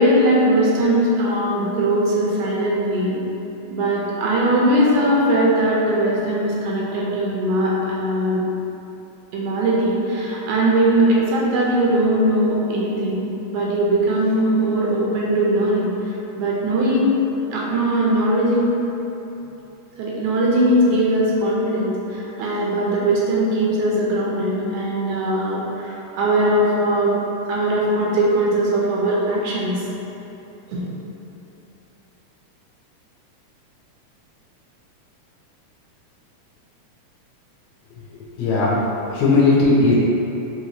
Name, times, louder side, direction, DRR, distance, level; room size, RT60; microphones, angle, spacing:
voice 1, 0.0-3.2 3.7-8.4 9.3-13.2 13.5-15.9 16.4-17.1 17.5-18.7 20.0-27.2 27.5-29.8 30.7-30.8, right 1 dB, 80° right, -5 dB, 2.2 m, -20 dB
voice 2, 38.4-38.8 39.1-39.9, left 3 dB, 70° left, -6 dB, 1.4 m, -16 dB
5.6 x 3.0 x 2.9 m, 3.0 s
omnidirectional pair, 3.6 m